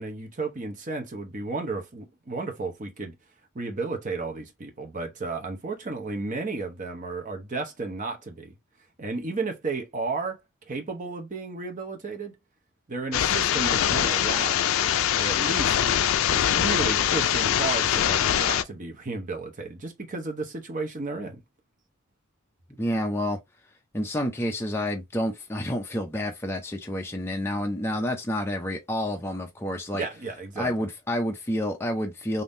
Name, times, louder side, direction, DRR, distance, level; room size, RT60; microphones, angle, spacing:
voice 1, 0.0-3.1 3.5-8.5 9.0-10.4 10.7-12.4 12.9-14.6 15.1-15.7 16.3-21.4 29.9-30.9, right 3 dB, 35° right, 0.8 m, -33 dB
sound 1, 13.1-18.6, left 10 dB, 70° left, 0.4 m, -23 dB
voice 2, 22.8-23.4 23.9-30.0 30.6-32.4, left 1 dB, 10° left, 0.5 m, -29 dB
3.5 x 2.6 x 2.6 m
head